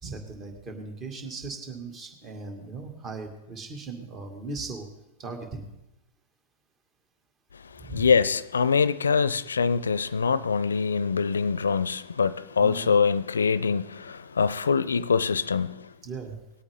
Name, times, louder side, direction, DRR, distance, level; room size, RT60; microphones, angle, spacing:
voice 1, 0.0-4.9 5.2-5.7 7.9-8.1 12.6-12.9 16.0-16.4, right 4 dB, 30° right, 2.2 m, -38 dB
voice 2, 7.9-15.8, left 5 dB, 80° left, 0.5 m, -24 dB
20.0 x 8.5 x 3.8 m
hypercardioid pair, 100°, 0 cm